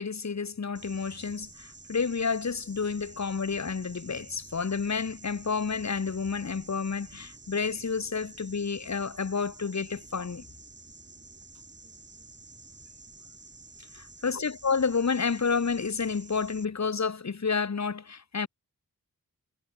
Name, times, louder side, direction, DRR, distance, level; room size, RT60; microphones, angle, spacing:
voice 1, 0.0-10.5 13.9-18.5, left 5 dB, 50° left, 2.9 m, -30 dB
sound 1, 0.8-16.7, right 3 dB, 30° right, 6.2 m, -50 dB
wide cardioid pair, 115°, 34 cm